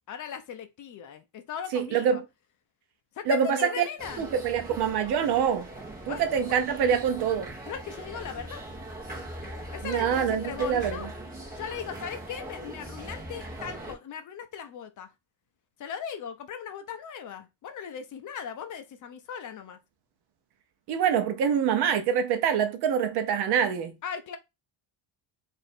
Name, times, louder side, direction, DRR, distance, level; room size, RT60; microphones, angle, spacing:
voice 1, 0.1-2.2 3.2-4.2 6.1-6.5 7.7-8.6 9.7-11.1 11.5-15.1 15.8-19.8 24.0-24.4, left 7 dB, 45° left, 0.5 m, -38 dB
voice 2, 1.7-2.2 3.3-3.9 4.2-5.7 6.1-7.5 9.8-11.1 20.9-24.0, right 7 dB, 60° right, 0.7 m, -25 dB
sound 1, 4.0-13.9, right 1 dB, 20° right, 1.1 m, -40 dB
3.0 x 2.6 x 4.2 m
cardioid pair, 175°, 45 cm